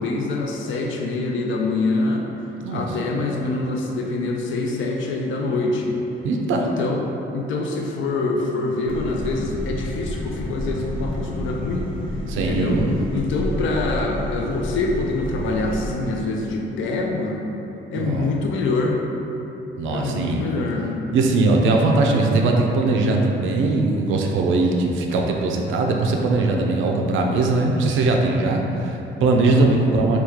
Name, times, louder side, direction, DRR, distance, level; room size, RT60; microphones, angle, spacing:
voice 1, 0.0-2.3 2.7-6.0 6.6-7.0 7.3-11.9 12.3-12.8 13.1-17.5 17.9-19.0 19.9-20.9 29.3-29.5, left 3 dB, 75° left, 1 dB, 0.5 m, -25 dB
voice 2, 6.2-6.7 12.3-12.9 18.0-18.3 19.8-20.5 21.1-30.2, right 3 dB, 80° right, 1 dB, 0.4 m, -20 dB
sound 1, 8.9-15.9, equal, 25° left, 0.7 m, -29 dB
3.0 x 2.3 x 3.5 m, 3.0 s
cardioid pair, 90°, 20 cm